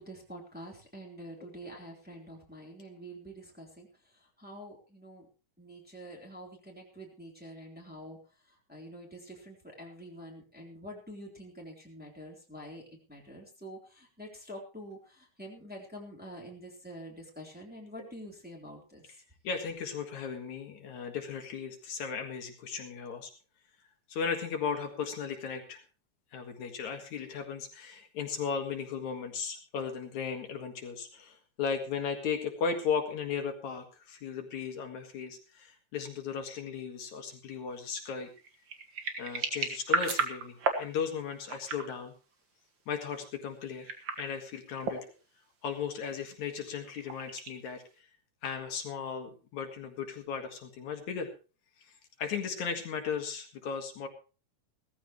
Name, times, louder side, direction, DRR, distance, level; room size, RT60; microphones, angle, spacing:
voice 1, 0.0-3.9 4.2-5.3 5.6-8.2 8.7-12.8 13.1-19.2, equal, 5° right, -1 dB, 3.3 m, -47 dB
voice 2, 19.4-23.3 24.1-25.8 26.3-38.3 39.2-42.1 42.9-43.9 44.2-45.1 45.6-48.1 48.4-51.3 51.8-51.9 52.2-54.1, left 6 dB, 70° left, 4 dB, 3.0 m, -36 dB
sound 1, 38.1-40.9 41.4-41.9 43.7-44.3 44.8-45.1 46.7-47.8, right 4 dB, 40° right, 2.2 m, -33 dB
17.0 x 14.5 x 3.1 m, 0.34 s
omnidirectional pair, 3.5 m